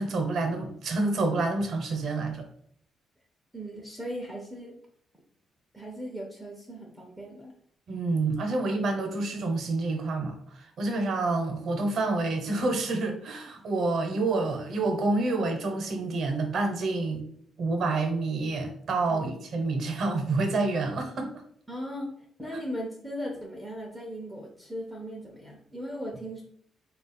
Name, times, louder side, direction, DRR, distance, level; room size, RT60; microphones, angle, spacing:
voice 1, 0.0-2.5 7.9-17.2 17.6-21.3, right 3 dB, 50° right, 4 dB, 0.8 m, -28 dB
voice 2, 3.5-4.7 5.7-7.5 19.1-19.3 21.7-26.4, equal, ahead, -1 dB, 0.6 m, -38 dB
4.4 x 2.3 x 4.2 m, 0.65 s
cardioid pair, 165°, 0 cm